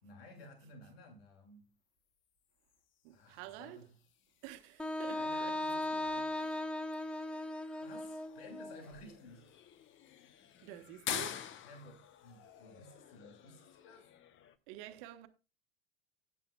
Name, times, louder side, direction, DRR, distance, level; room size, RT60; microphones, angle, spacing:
voice 1, 0.0-1.7 3.1-3.9 5.0-6.3 7.8-9.5 11.6-14.1, left 2 dB, 75° left, 2.6 m, -55 dB
sound 1, 2.6-14.6, left 9 dB, 40° left, 1.0 m, -48 dB
voice 2, 3.0-3.9 4.4-5.6 5.9-6.8 10.6-11.5 14.7-15.3, right 13 dB, 60° right, 1.3 m, -50 dB
Wind instrument woodwind instrument, 4.8-8.8, left 1 dB, 5° left, 0.9 m, -37 dB
14.5 x 9.7 x 2.3 m
hypercardioid pair, 80°, 30 cm